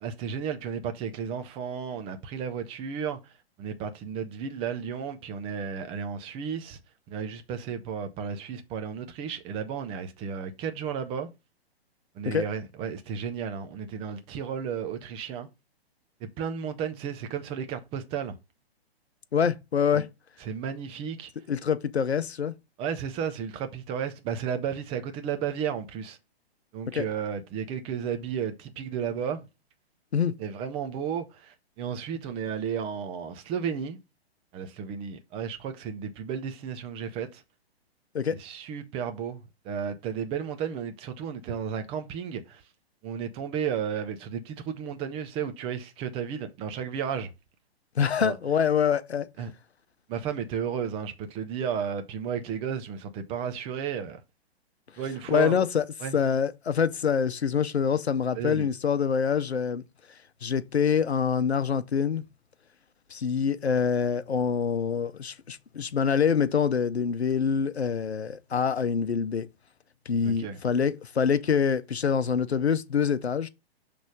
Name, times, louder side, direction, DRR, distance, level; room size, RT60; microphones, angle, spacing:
voice 1, 0.0-3.3 3.6-6.8 7.1-11.3 12.1-15.5 16.2-18.3 19.9-20.0 20.4-21.3 22.8-26.2 26.7-29.4 30.4-34.0 34.5-37.4 38.3-42.6 43.0-47.3 48.2-48.4 49.4-49.5 50.1-54.2 55.0-55.6 56.0-56.2 58.4-58.7 70.2-70.6, right 7 dB, 20° right, 0.6 m, -33 dB
voice 2, 19.3-20.1 21.5-22.5 26.9-27.1 30.1-30.3 38.1-38.4 48.0-49.3 55.3-55.8 56.1-59.8 60.4-62.2 63.1-69.5 70.1-73.5, left 7 dB, 80° left, 0.7 m, -25 dB
6.2 x 3.4 x 5.1 m
figure-of-eight pair, 120°, 32 cm